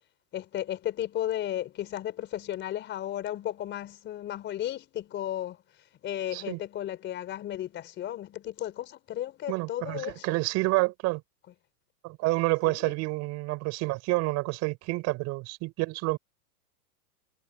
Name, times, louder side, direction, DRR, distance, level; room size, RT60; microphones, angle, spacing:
voice 1, 0.3-5.6 6.0-10.3 12.7-12.9, left 12 dB, 25° left, 4.0 m, -34 dB
voice 2, 9.5-11.2 12.0-16.2, right 22 dB, 35° right, 6.8 m, -28 dB
hypercardioid pair, 145°, 46 cm